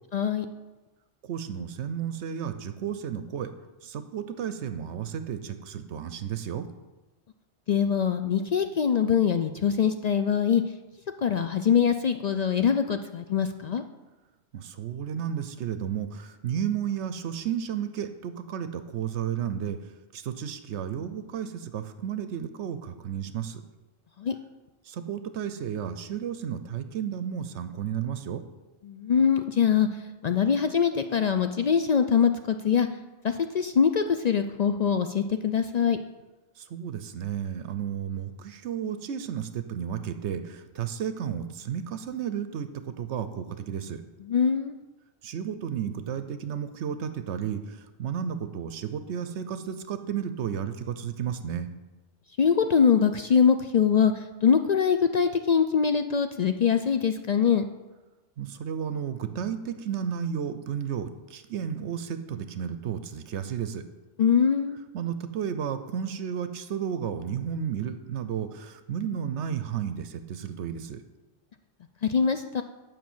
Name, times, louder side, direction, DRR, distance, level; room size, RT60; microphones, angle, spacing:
voice 1, 0.1-0.5 7.7-10.6 11.2-13.8 24.2-24.3 28.9-29.9 30.2-32.9 33.2-36.0 44.3-44.8 52.4-54.1 54.4-57.6 64.2-64.8 72.0-72.6, left 7 dB, 65° left, 8 dB, 0.4 m, -23 dB
voice 2, 1.2-3.5 3.8-6.7 14.5-19.8 20.1-23.6 24.9-28.4 36.6-44.0 45.2-51.7 58.4-63.8 64.9-71.0, right 8 dB, 75° right, 10 dB, 0.9 m, -33 dB
8.7 x 5.4 x 7.2 m, 1.1 s
omnidirectional pair, 1.2 m